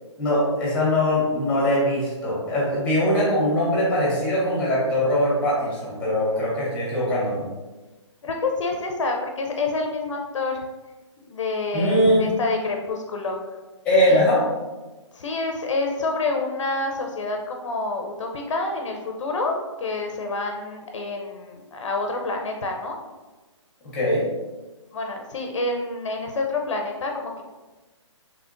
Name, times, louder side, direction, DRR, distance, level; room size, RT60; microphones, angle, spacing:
voice 1, 0.2-7.4 11.7-12.2 13.8-14.4 23.9-24.2, left 1 dB, 5° left, -6 dB, 1.4 m, -21 dB
voice 2, 8.2-10.6 11.2-13.4 14.1-14.2 15.1-23.0 24.9-27.4, left 3 dB, 70° left, 2 dB, 0.6 m, -28 dB
3.4 x 3.3 x 2.5 m, 1.2 s
hypercardioid pair, 155°, 16 cm